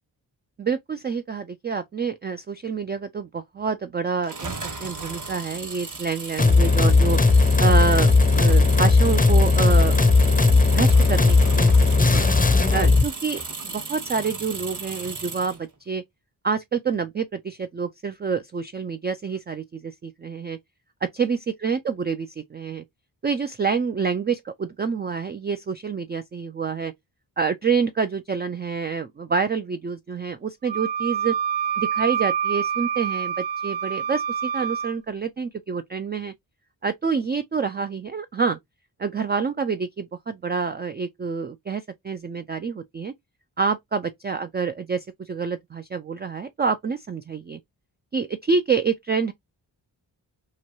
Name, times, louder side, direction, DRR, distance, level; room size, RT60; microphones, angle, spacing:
voice 1, 0.6-4.5 4.8-7.2 7.6-12.2 12.7-13.4 13.7-16.0 16.4-20.6 21.0-22.8 23.2-26.9 27.4-31.3 31.8-36.3 36.8-38.6 39.0-43.1 43.6-47.6 48.1-49.3, right 5 dB, 25° right, 0.3 m, -27 dB
sound 1, 4.2-15.6, right 4 dB, 40° right, 1.0 m, -35 dB
sound 2, 6.4-13.1, left 3 dB, 20° left, 0.6 m, -17 dB
Wind instrument woodwind instrument, 30.7-34.9, right 8 dB, 75° right, 0.6 m, -27 dB
3.0 x 2.2 x 2.6 m
cardioid pair, 45°, 47 cm